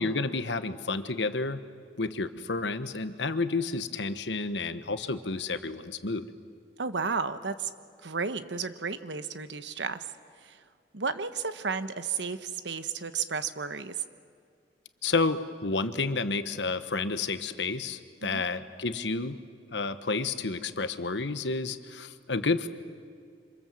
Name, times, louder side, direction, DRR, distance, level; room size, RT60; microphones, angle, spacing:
voice 1, 0.0-1.6 2.0-6.2 15.0-19.4 19.7-22.7, left 3 dB, 75° left, 10 dB, 1.2 m, -30 dB
voice 2, 6.8-7.7 8.0-10.1 10.4-10.6 10.9-14.0 18.2-18.4, right 5 dB, 80° right, 11 dB, 1.2 m, -33 dB
26.5 x 26.5 x 7.6 m, 2.1 s
head